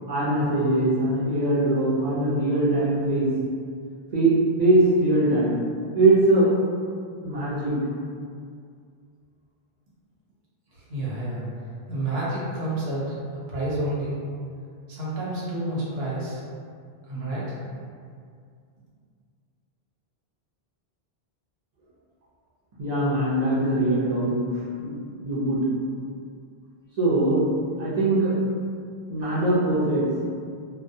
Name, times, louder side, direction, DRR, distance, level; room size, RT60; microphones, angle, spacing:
voice 1, 0.1-3.3 4.1-5.6 5.9-6.5 7.2-7.7 22.8-24.4 24.8-24.9 25.2-25.6 27.0-27.5 27.8-28.3 29.1-30.0, right 2 dB, 45° right, -9 dB, 0.7 m, -21 dB
voice 2, 10.7-11.4 11.9-14.2 14.9-16.4 17.1-17.6, right 1 dB, 75° right, -7 dB, 1.0 m, -29 dB
2.2 x 2.2 x 2.6 m, 2.2 s
omnidirectional pair, 1.0 m